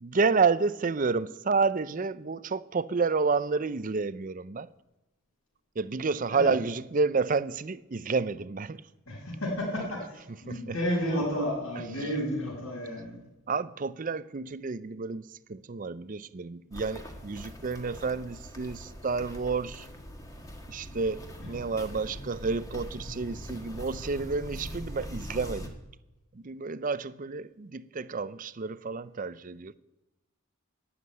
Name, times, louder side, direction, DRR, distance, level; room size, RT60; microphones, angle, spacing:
voice 1, 0.0-4.7 5.8-8.8 10.5-10.8 13.5-19.9 20.7-25.7 26.3-29.7, right 4 dB, 40° right, 0.5 m, -30 dB
voice 2, 9.1-13.2, equal, 80° left, 5.8 m, -32 dB
Walk footsteps, 16.7-25.7, equal, 15° left, 1.6 m, -42 dB
12.0 x 9.7 x 9.4 m
head